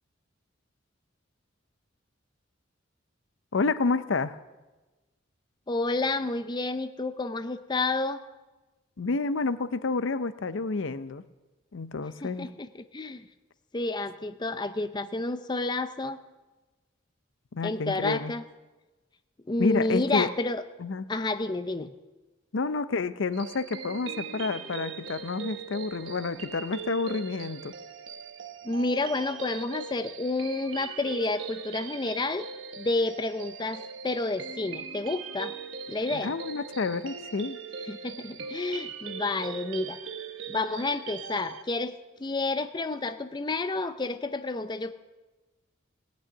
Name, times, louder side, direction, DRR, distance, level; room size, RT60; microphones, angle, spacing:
voice 1, 3.5-4.4 9.0-11.2 11.7-12.5 17.5-18.3 19.6-20.3 20.8-21.1 22.5-27.7 36.1-37.6, left 4 dB, 65° left, 13 dB, 0.6 m, -29 dB
voice 2, 5.7-8.2 12.2-13.3 13.7-16.2 17.6-18.4 19.5-20.6 21.1-21.9 28.6-32.5 32.8-35.6 35.9-36.4 37.9-40.0 40.5-41.9 42.2-44.9, left 2 dB, 20° left, 10 dB, 0.5 m, -30 dB
sound 1, 23.3-41.6, right 6 dB, 70° right, 1.0 m, -40 dB
17.0 x 6.2 x 9.5 m, 1.2 s
head